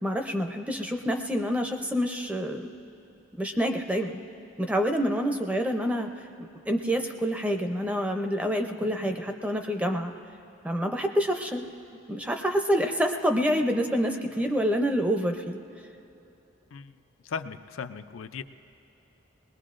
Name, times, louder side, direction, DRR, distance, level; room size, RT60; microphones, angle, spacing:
voice 1, 0.0-2.7 3.4-4.2 4.6-6.1 6.4-10.1 10.6-11.7 12.1-15.6, equal, 5° right, 4 dB, 0.5 m, -27 dB
voice 2, 17.2-18.4, left 6 dB, 85° left, 9 dB, 0.4 m, -37 dB
21.0 x 20.0 x 2.5 m, 2.9 s
head